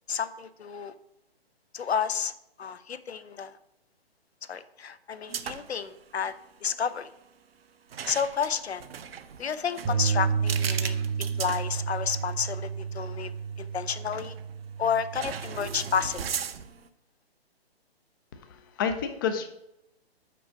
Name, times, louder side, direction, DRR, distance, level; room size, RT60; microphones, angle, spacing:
voice 1, 0.1-0.9 1.7-2.3 2.6-3.6 4.5-6.3 6.6-7.1 8.1-8.9 9.4-13.3 13.6-14.4 14.8-16.2, left 7 dB, 85° left, 13 dB, 0.6 m, -31 dB
sound 1, 5.3-5.8 6.1-6.3 7.9-12.3 12.8-12.9 14.1-14.5 15.1-16.9, right 8 dB, 70° right, 0.6 m, -37 dB
Bass guitar, 9.8-16.1, right 6 dB, 25° right, 0.8 m, -31 dB
voice 2, 18.4-19.5, left 6 dB, 20° left, 8 dB, 0.4 m, -30 dB
6.1 x 4.7 x 5.6 m, 0.85 s
figure-of-eight pair, 135°, 31 cm